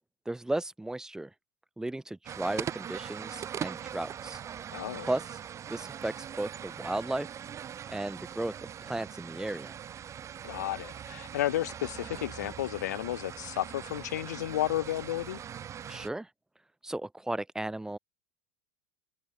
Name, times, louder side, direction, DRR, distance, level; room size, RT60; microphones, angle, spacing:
voice 1, 0.2-1.3 1.8-4.4 5.0-5.4 5.7-7.3 7.9-9.7 15.9-16.3 16.8-18.0, right 1 dB, 5° right, 1.2 m, -35 dB
sound 1, 2.2-16.1, right 9 dB, 35° right, 4.3 m, -41 dB
voice 2, 4.7-5.1 10.4-15.4, left 13 dB, 85° left, 0.7 m, -32 dB
hypercardioid pair, 105°, 9 cm